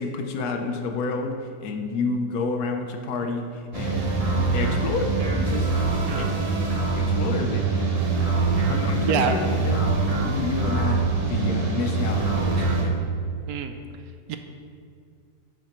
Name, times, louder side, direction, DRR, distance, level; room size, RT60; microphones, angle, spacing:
voice 1, 0.0-4.1 4.5-5.7 6.1-7.9 8.2-8.3 8.7-13.0, left 4 dB, 75° left, 4 dB, 1.3 m, -30 dB
sound 1, 3.7-12.8, right 3 dB, 30° right, 0.9 m, -24 dB
voice 2, 6.1-6.5 9.1-9.4 13.5-13.7 14.3-14.4, right 7 dB, 75° right, 8 dB, 1.0 m, -26 dB
10.5 x 7.5 x 3.1 m, 2.2 s
omnidirectional pair, 1.7 m